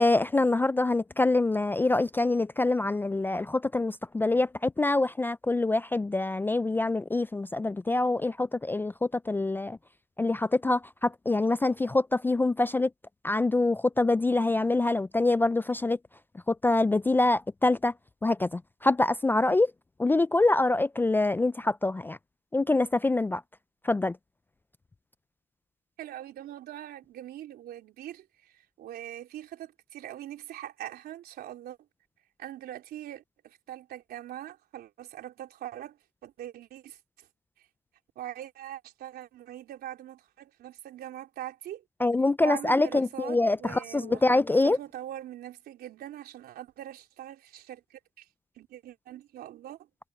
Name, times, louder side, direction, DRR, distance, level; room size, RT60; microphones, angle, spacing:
voice 1, 0.0-9.8 10.2-12.9 13.2-16.0 16.5-17.9 18.2-19.7 20.0-22.2 22.5-23.4 23.8-24.2 42.0-44.8, left 2 dB, 10° left, 0.4 m, -25 dB
voice 2, 26.0-31.8 32.4-37.3 38.2-41.8 42.4-44.2 44.6-48.3 48.6-49.9, right 12 dB, 70° right, 4.0 m, -42 dB
cardioid pair, 110°, 17 cm